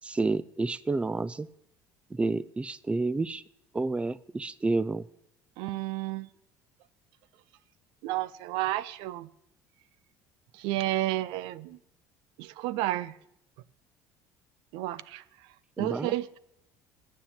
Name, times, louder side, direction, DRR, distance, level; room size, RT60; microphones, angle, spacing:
voice 1, 0.0-1.5 2.1-3.4 3.7-5.1 15.8-16.1, right 3 dB, 15° right, 0.5 m, -29 dB
voice 2, 5.6-6.3 8.0-9.3 10.5-11.8 12.4-13.2 14.7-16.4, right 15 dB, 75° right, 0.5 m, -32 dB
10.0 x 9.9 x 9.8 m
supercardioid pair, 85°, 8 cm